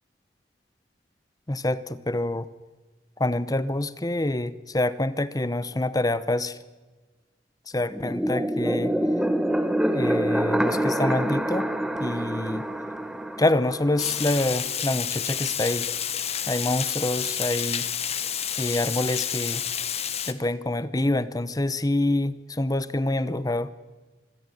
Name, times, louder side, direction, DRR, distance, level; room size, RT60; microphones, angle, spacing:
voice 1, 1.5-2.5 3.2-6.6 7.7-8.9 9.9-11.7 12.0-12.6 13.4-15.9 16.5-17.9 18.6-19.6 20.3-23.7, left 1 dB, 20° left, 15 dB, 0.8 m, -26 dB
sound 1, 7.9-14.5, right 1 dB, 5° right, 1.3 m, -26 dB
Water, 14.0-20.3, left 9 dB, 35° left, 1.2 m, -29 dB
25.0 x 14.5 x 9.9 m, 1.3 s
head